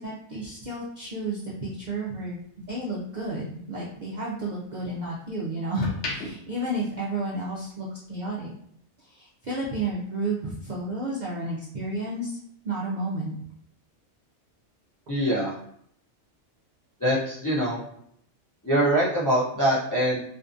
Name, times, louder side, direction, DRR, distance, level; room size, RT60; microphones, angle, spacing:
voice 1, 0.0-2.4 2.7-8.5 9.0-12.4 12.6-13.3, right 1 dB, 55° right, -5 dB, 0.5 m, -31 dB
sound 1, 1.0-3.3 3.7-5.1 5.6-7.7 8.0-8.3, left 2 dB, 75° left, 1.0 m, -39 dB
voice 2, 15.1-15.5 17.0-17.8 18.6-20.2, right 1 dB, 30° left, -7 dB, 0.3 m, -23 dB
2.6 x 2.4 x 2.5 m, 0.68 s
omnidirectional pair, 1.2 m